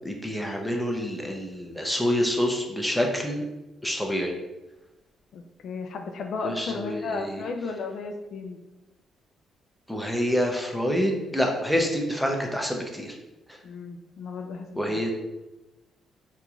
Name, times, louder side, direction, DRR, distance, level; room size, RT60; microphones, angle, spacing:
voice 1, 0.0-3.4 3.8-4.3 6.4-7.4 9.9-13.2 14.8-15.1, equal, ahead, 1 dB, 0.6 m, -27 dB
voice 2, 5.3-8.6 13.6-15.1, left 4 dB, 65° left, 4 dB, 0.3 m, -34 dB
3.7 x 2.9 x 2.4 m, 1.0 s
cardioid pair, 90°, 0 cm